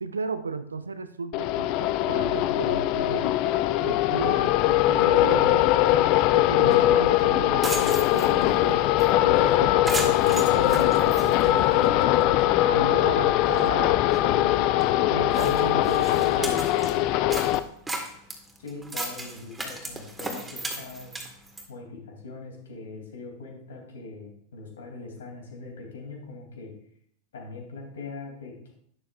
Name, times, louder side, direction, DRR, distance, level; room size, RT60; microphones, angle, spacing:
voice 1, 0.0-3.3 3.8-8.8 9.2-12.1 12.7-14.8 15.1-16.6, right 4 dB, 75° right, 11 dB, 0.6 m, -35 dB
sound 1, 1.3-17.6, left 14 dB, 40° left, 0.5 m, -21 dB
sound 2, 6.7-6.8 7.2-7.3 7.5-8.5 9.0-9.1 9.4-9.5 9.9-12.0 12.4-12.5 13.1-13.2 13.4-13.7 14.1-14.2 14.8-14.9 15.3-16.9 17.3-21.7, right 2 dB, 10° right, 1.9 m, -35 dB
voice 2, 18.6-21.1 21.7-26.7 27.3-28.7, left 3 dB, 65° left, 1 dB, 3.3 m, -41 dB
12.0 x 11.0 x 2.6 m, 0.65 s
figure-of-eight pair, 90°, 0 cm